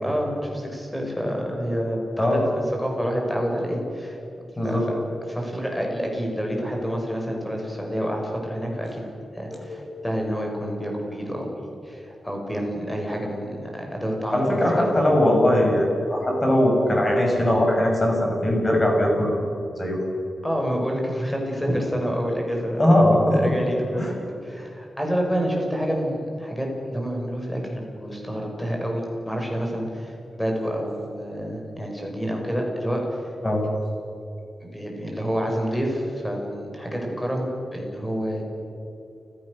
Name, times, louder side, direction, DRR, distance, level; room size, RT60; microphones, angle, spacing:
voice 1, 0.0-4.2 4.6-4.8 5.3-9.0 9.3-14.9 20.4-22.8 23.3-24.1 24.4-33.2 34.6-38.4, equal, 5° left, 0 dB, 5.9 m, -28 dB
voice 2, 4.6-4.9 9.5-9.9 14.3-19.4 19.8-20.0 22.8-23.5 24.0-24.1 33.4-33.6, left 1 dB, 20° left, 0 dB, 6.8 m, -20 dB
30.0 x 16.5 x 6.7 m, 2.9 s
wide cardioid pair, 130°, 0 cm